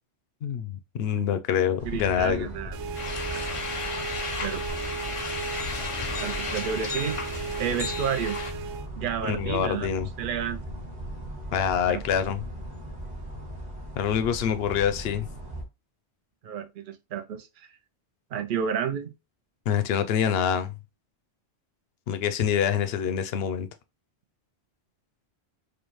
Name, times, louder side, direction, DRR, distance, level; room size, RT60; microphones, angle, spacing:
voice 1, 0.4-2.5 9.2-10.1 11.5-12.5 14.0-15.3 19.7-20.7 22.1-23.7, left 8 dB, 70° left, 0.8 m, -26 dB
sound 1, 1.8-15.6, equal, 40° right, 1.2 m, -38 dB
voice 2, 1.8-2.8 3.3-3.6 4.4-4.6 6.2-7.2 7.6-8.4 9.0-9.9 10.2-10.6 11.9-12.0 16.4-17.7 18.3-19.1, right 8 dB, 60° right, 0.7 m, -31 dB
sound 2, 2.7-8.9, right 5 dB, 85° right, 0.9 m, -36 dB
sound 3, 2.9-8.5, left 4 dB, 40° left, 0.5 m, -34 dB
5.0 x 2.3 x 3.0 m
omnidirectional pair, 1.1 m